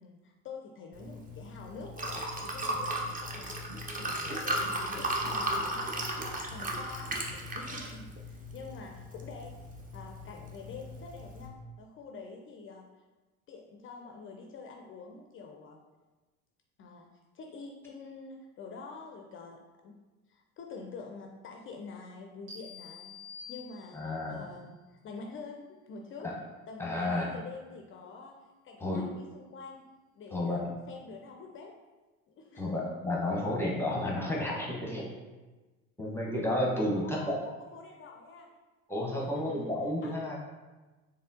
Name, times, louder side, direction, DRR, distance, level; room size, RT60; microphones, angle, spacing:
voice 1, 0.0-7.2 7.5-9.6 9.9-12.9 13.5-15.8 16.8-17.1 17.3-20.0 20.3-23.2 23.5-24.8 25.0-26.3 26.7-28.4 28.6-29.9 30.1-30.6 30.9-31.8 32.3-32.8 36.1-36.2 37.0-38.5 39.2-39.7 40.0-40.1, left 4 dB, 30° left, 2 dB, 0.4 m, -47 dB
Liquid, 0.9-11.5, right 1 dB, 20° right, 0.6 m, -36 dB
sound 1, 22.5-24.3, left 5 dB, 70° right, 1.1 m, -48 dB
voice 2, 23.9-24.5 26.2-26.3 26.8-27.3 28.8-29.0 30.3-30.7 32.6-35.1 36.0-37.4 38.9-40.4, left 1 dB, 5° left, -3 dB, 0.9 m, -31 dB
4.1 x 3.4 x 2.6 m, 1.2 s
hypercardioid pair, 65°, 42 cm